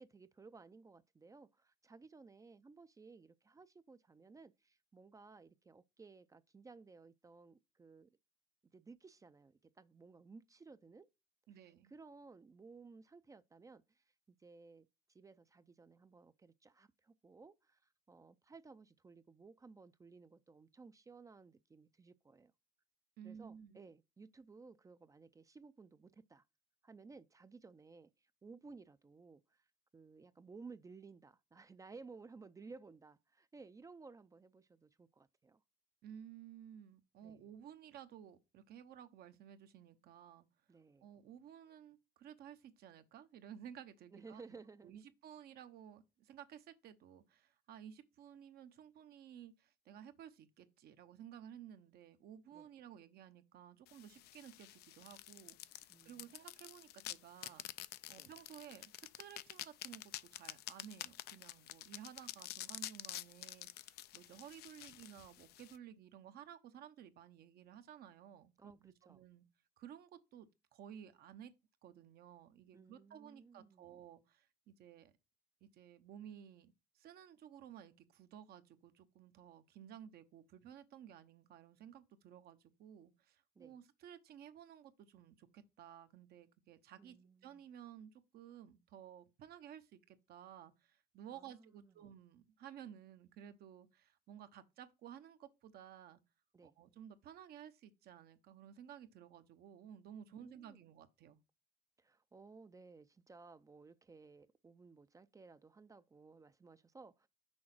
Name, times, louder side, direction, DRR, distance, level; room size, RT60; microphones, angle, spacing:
voice 1, 0.0-8.1 8.7-11.1 11.9-17.8 18.1-22.5 23.2-26.4 26.8-29.6 29.9-35.6 37.2-37.5 40.7-41.1 44.1-45.0 52.5-52.7 55.9-56.3 58.1-58.3 68.6-69.2 72.7-73.9 83.6-83.8 87.0-87.6 91.3-91.9 96.5-96.8 100.3-100.8 102.0-107.3, right 4 dB, 20° right, 0.4 m, -58 dB
voice 2, 11.5-11.9 23.2-23.8 36.0-40.5 41.0-44.4 44.8-57.6 58.1-69.4 69.8-71.5 71.8-75.1 75.6-96.2 96.6-101.4, right 9 dB, 70° right, 0.9 m, -55 dB
sound 1, 53.9-65.8, left 14 dB, 75° left, 0.4 m, -49 dB
6.3 x 3.8 x 5.9 m
cardioid pair, 110°, 17 cm